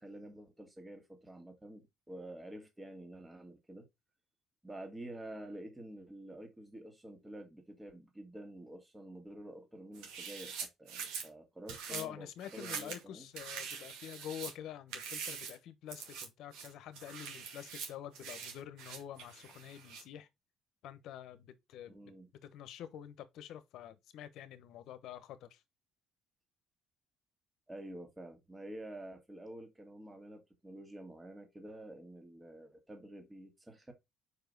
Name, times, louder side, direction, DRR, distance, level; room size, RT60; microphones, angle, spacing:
voice 1, 0.0-3.9 4.6-13.3 21.9-22.3 27.7-33.9, right 1 dB, 15° right, 1.9 m, -49 dB
sound 1, 9.9-11.3 11.7-12.0 12.4-13.0 13.4-14.5 14.9-15.6 15.9-16.3 16.5-20.0, right 6 dB, 80° right, 2.2 m, -44 dB
voice 2, 11.9-20.3 20.8-21.9 22.4-25.6, left 10 dB, 70° left, 0.9 m, -47 dB
4.9 x 4.9 x 3.9 m
supercardioid pair, 80°, 0 cm